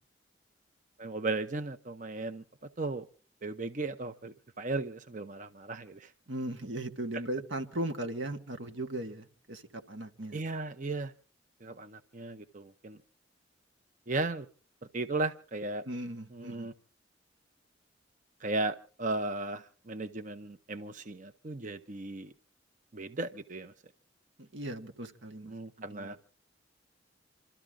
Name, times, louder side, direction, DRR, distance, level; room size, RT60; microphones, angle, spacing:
voice 1, 1.0-2.4 2.8-3.1 3.4-6.1 10.3-11.1 11.6-13.0 14.1-14.5 14.9-15.8 16.3-16.7 18.4-22.3 22.9-23.7 25.4-26.2, right 3 dB, 45° right, 0.8 m, -36 dB
voice 2, 6.3-10.4 15.8-16.7 24.4-26.1, right 1 dB, 85° right, 1.7 m, -38 dB
27.5 x 13.5 x 3.7 m
head